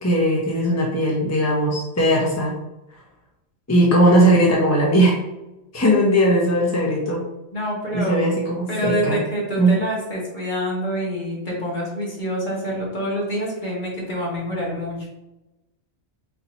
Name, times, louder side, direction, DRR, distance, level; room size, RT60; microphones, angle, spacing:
voice 1, 0.0-2.6 3.7-5.1 5.7-7.2 7.9-9.2 9.6-9.8, right 1 dB, 20° left, -3 dB, 0.6 m, -18 dB
voice 2, 7.5-8.3 8.7-15.1, equal, 45° left, -5 dB, 1.7 m, -26 dB
4.1 x 2.9 x 3.9 m, 0.99 s
omnidirectional pair, 1.2 m